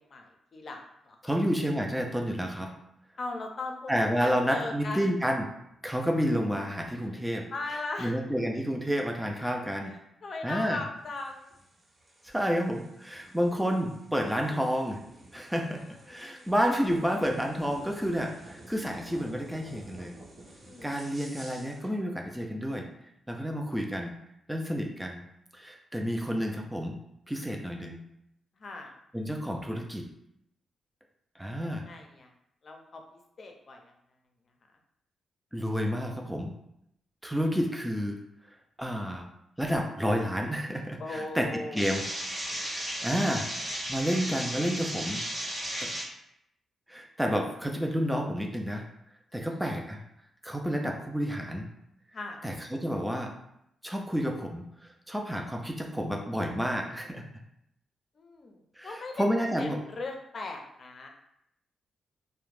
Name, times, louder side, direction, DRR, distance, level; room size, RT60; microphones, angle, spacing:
voice 1, 0.0-1.4 3.2-3.9 4.2-5.1 7.5-8.2 9.9-11.5 16.1-16.5 20.6-20.9 28.6-28.9 31.6-32.3 32.6-33.0 33.4-33.9 41.0-42.0 49.3-49.6 52.1-52.4 58.2-59.2 59.6-61.1, left 2 dB, 55° left, 3 dB, 0.5 m, -39 dB
voice 2, 1.2-2.7 3.9-5.5 5.8-7.5 8.0-9.9 10.4-10.8 12.2-15.0 15.3-20.1 20.8-22.9 23.3-24.1 24.5-25.2 25.5-26.9 27.3-28.0 29.1-30.0 31.4-31.8 35.5-36.5 37.2-38.2 38.8-39.3 39.6-42.0 42.7-43.5 43.9-45.2 45.8-45.9 46.9-48.8 49.3-50.0 50.4-51.7 52.4-53.3 53.8-54.6 55.1-57.2 58.8-59.8, equal, 5° right, 2 dB, 0.4 m, -30 dB
sound 1, 11.0-21.9, right 1 dB, 65° right, 0.9 m, -52 dB
sound 2, 41.8-46.1, equal, 30° right, 0.8 m, -34 dB
2.3 x 2.1 x 3.2 m, 0.77 s
supercardioid pair, 60°, 0 cm